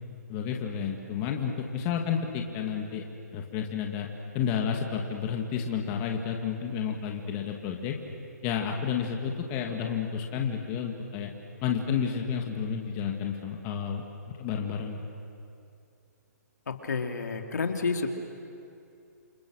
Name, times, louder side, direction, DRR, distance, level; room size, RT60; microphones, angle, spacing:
voice 1, 0.3-3.0 3.3-4.1 4.3-8.0 8.4-11.3 11.6-14.0 14.4-15.0, left 7 dB, 25° left, 2 dB, 2.3 m, -31 dB
voice 2, 16.7-18.1, left 4 dB, 75° left, 4 dB, 3.0 m, -30 dB
29.5 x 29.0 x 6.6 m, 2.6 s
hypercardioid pair, 150°, 9 cm